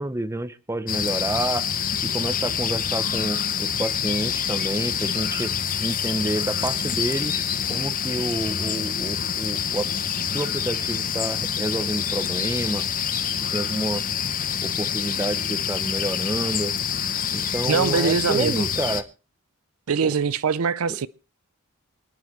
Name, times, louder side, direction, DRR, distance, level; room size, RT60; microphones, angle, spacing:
voice 1, 0.0-1.7 2.0-5.5 5.8-7.4 7.7-9.9 10.3-12.8 13.5-14.0 14.6-16.7 17.3-19.1 20.0-20.1 20.9-21.0, right 1 dB, 15° right, 0.6 m, -29 dB
sound 1, 0.9-19.0, left 8 dB, 40° left, 0.8 m, -26 dB
voice 2, 17.7-18.7 19.9-21.1, right 5 dB, 80° right, 0.6 m, -23 dB
27.5 x 9.3 x 3.1 m
head